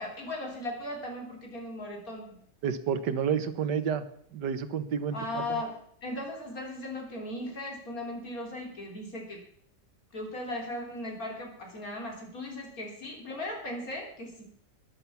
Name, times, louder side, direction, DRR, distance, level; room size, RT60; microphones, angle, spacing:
voice 1, 0.0-2.4 5.1-9.4 10.1-14.5, left 1 dB, 55° left, 1 dB, 3.8 m, -37 dB
voice 2, 2.6-4.0 4.3-5.6, right 7 dB, 85° right, 12 dB, 1.7 m, -30 dB
11.5 x 10.5 x 7.1 m, 0.64 s
omnidirectional pair, 1.8 m